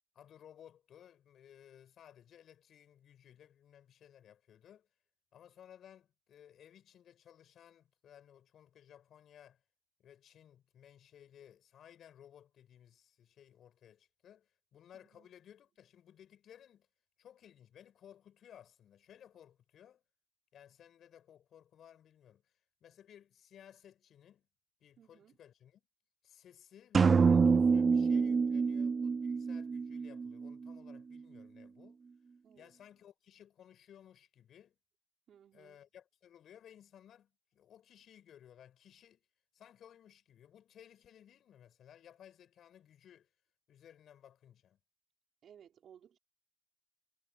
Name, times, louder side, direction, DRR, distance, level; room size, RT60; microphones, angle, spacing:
voice 1, 0.1-4.9 5.3-9.6 10.0-16.9 17.2-20.0 20.5-24.5 24.8-25.8 26.2-32.0 32.5-34.8 35.5-39.2 39.5-43.3 43.7-44.8, left 10 dB, 50° left, 7.9 m, -59 dB
voice 2, 14.9-15.3 25.0-25.4 32.4-32.7 35.3-35.8 45.4-46.2, right 9 dB, 45° right, 5.1 m, -60 dB
sound 1, 26.9-30.7, right 5 dB, 25° right, 0.4 m, -27 dB
cardioid pair, 165°, 0 cm